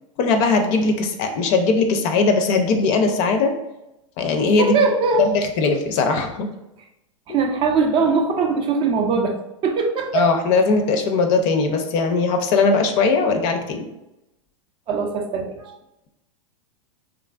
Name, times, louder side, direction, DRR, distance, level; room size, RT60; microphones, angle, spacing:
voice 1, 0.2-3.5 4.2-4.8 5.2-6.5 10.1-13.8, left 4 dB, 45° left, 5 dB, 0.5 m, -19 dB
voice 2, 4.5-5.3 7.3-9.4 9.6-10.3 14.9-15.8, right 4 dB, 30° right, 3 dB, 0.4 m, -21 dB
3.0 x 2.4 x 2.3 m, 0.90 s
hypercardioid pair, 115°, 17 cm